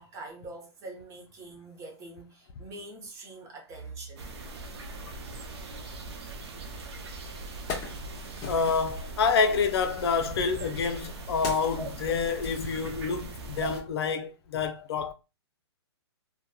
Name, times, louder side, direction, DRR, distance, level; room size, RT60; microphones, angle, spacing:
voice 1, 0.0-4.2 6.8-7.0, right 2 dB, 20° right, 0.6 m, -44 dB
sound 1, 4.2-13.8, right 3 dB, 70° right, 0.6 m, -40 dB
Wood, 6.9-7.0 7.4-9.0 10.0-13.3 13.6-13.8, left 4 dB, 25° left, 0.7 m, -40 dB
voice 2, 8.4-15.1, left 5 dB, 65° left, 0.4 m, -28 dB
2.8 x 2.1 x 2.2 m
hypercardioid pair, 140°, 14 cm